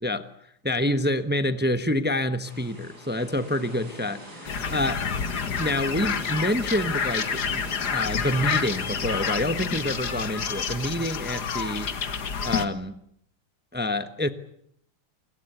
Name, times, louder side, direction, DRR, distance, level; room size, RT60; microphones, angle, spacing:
voice 1, 0.6-5.0 5.6-11.9 12.4-12.9 13.7-14.3, left 1 dB, 10° right, 10 dB, 0.4 m, -27 dB
sound 1, 2.4-9.4, right 1 dB, 45° right, 7.3 m, -44 dB
sound 2, 4.5-12.7, left 6 dB, 50° left, 2.0 m, -29 dB
29.5 x 21.0 x 8.2 m, 0.73 s
omnidirectional pair, 2.4 m